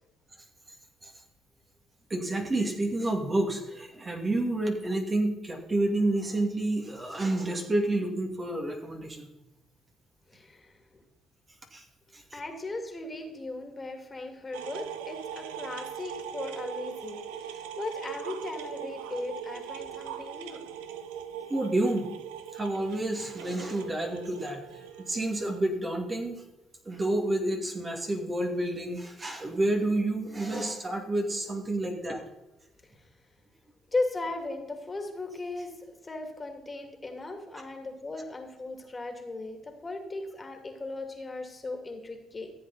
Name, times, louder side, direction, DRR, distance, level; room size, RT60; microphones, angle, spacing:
voice 1, 2.1-9.3 11.7-11.8 12.1-12.4 21.5-22.1 22.5-24.6 25.0-26.4 26.9-32.2, right 1 dB, 30° right, 2 dB, 2.3 m, -29 dB
voice 2, 10.3-10.8 12.3-20.6 33.9-35.7 36.0-42.5, left 2 dB, 30° left, 4 dB, 2.4 m, -37 dB
sound 1, 14.5-25.6, right 9 dB, 90° right, 0.6 m, -40 dB
14.5 x 7.8 x 4.1 m, 0.98 s
supercardioid pair, 60°, 0 cm